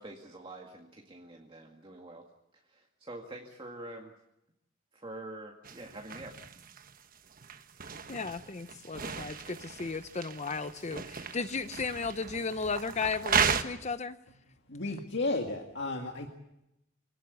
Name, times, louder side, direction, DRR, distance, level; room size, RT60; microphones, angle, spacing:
voice 1, 0.0-2.2 2.5-4.1 4.9-6.4, right 1 dB, 25° right, 1 dB, 2.0 m, -46 dB
sound 1, 5.6-13.6, right 6 dB, 45° right, 1.2 m, -35 dB
voice 2, 8.1-14.2, left 4 dB, 35° left, 12 dB, 0.8 m, -35 dB
voice 3, 14.7-16.3, left 2 dB, 60° left, 2 dB, 2.1 m, -33 dB
25.5 x 18.0 x 8.1 m, 0.85 s
head